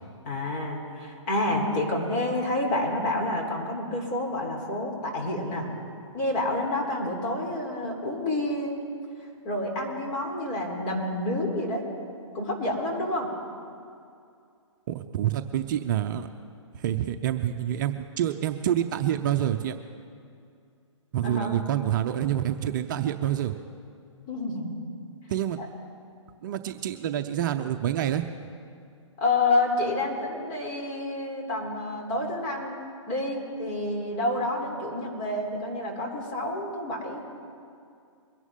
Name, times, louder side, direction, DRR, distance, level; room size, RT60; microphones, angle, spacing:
voice 1, 0.2-5.7 6.1-8.8 9.4-11.8 12.3-13.3 21.2-21.6 24.3-24.7 25.6-25.7 29.2-37.2, left 2 dB, 30° left, 0 dB, 3.7 m, -29 dB
voice 2, 14.9-16.3 16.7-19.7 21.1-23.6 25.3-25.6 26.4-28.3, right 11 dB, 40° right, 7 dB, 0.6 m, -27 dB
23.0 x 11.0 x 3.8 m, 2.4 s
hypercardioid pair, 135°, 16 cm